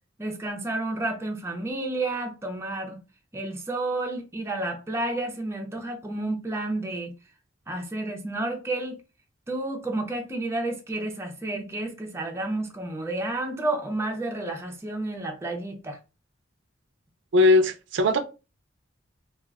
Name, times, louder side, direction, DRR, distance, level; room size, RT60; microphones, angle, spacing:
voice 1, 0.2-3.0 3.3-7.1 7.7-9.0 9.5-16.0, right 2 dB, 15° right, 0.5 m, -31 dB
voice 2, 17.3-18.2, left 2 dB, 70° right, 0.4 m, -19 dB
2.3 x 2.2 x 3.4 m
head